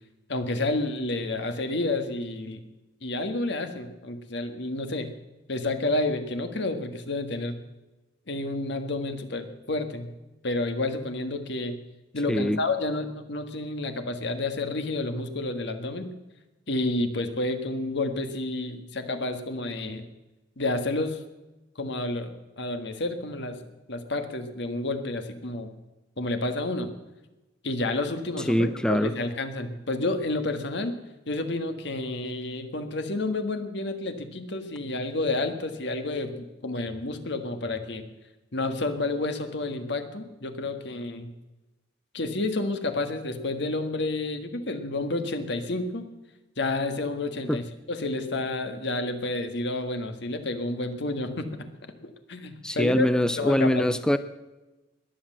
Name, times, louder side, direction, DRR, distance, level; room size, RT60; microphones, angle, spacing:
voice 1, 0.3-2.6 3.0-5.1 5.5-7.6 8.3-10.1 10.4-11.8 12.1-16.1 16.7-20.0 20.6-21.2 21.8-23.6 23.9-25.7 26.2-26.9 27.6-31.0 31.3-38.0 38.5-41.3 42.1-46.1 46.6-51.7 52.0-53.1 53.4-53.9, left 2 dB, 65° left, 1.7 m, -30 dB
voice 2, 28.5-29.1 47.5-47.6 52.6-54.2, equal, 5° left, 0.4 m, -23 dB
20.5 x 7.9 x 7.4 m
head